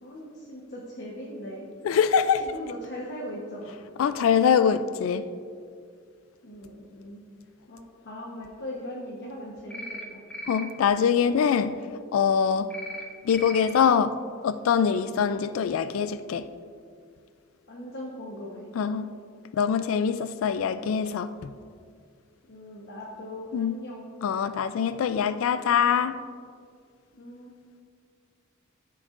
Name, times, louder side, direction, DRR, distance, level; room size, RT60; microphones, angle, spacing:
voice 1, 0.0-1.7 2.4-3.7 6.4-7.2 7.7-10.2 17.7-18.7 22.5-24.2 27.2-27.5, equal, 55° left, 1.1 m, -39 dB
voice 2, 1.8-2.4 4.0-5.2 10.5-11.8 12.1-12.7 13.2-14.2 14.4-16.4 18.8-19.1 19.5-21.5 23.5-23.8 24.2-26.2, left 7 dB, 75° left, 0.3 m, -23 dB
sound 1, 9.7-10.0 10.3-10.6 12.7-13.0 13.3-13.6, equal, 5° left, 1.0 m, -37 dB
14.5 x 6.9 x 2.5 m
head